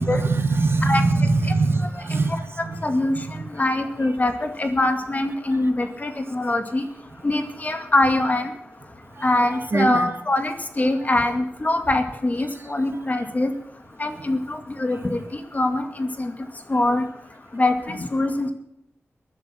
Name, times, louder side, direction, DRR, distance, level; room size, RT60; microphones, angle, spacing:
voice 1, 0.0-2.8 3.1-3.4 9.2-9.3 9.7-10.1, right 3 dB, 60° right, 9 dB, 1.6 m, -22 dB
voice 2, 2.6-3.2 3.5-6.8 7.2-8.5 9.2-13.5 14.0-16.3 16.7-17.1 17.5-18.5, left 2 dB, 35° left, 7 dB, 2.1 m, -23 dB
20.0 x 11.0 x 5.8 m, 0.79 s
wide cardioid pair, 85°, 5 cm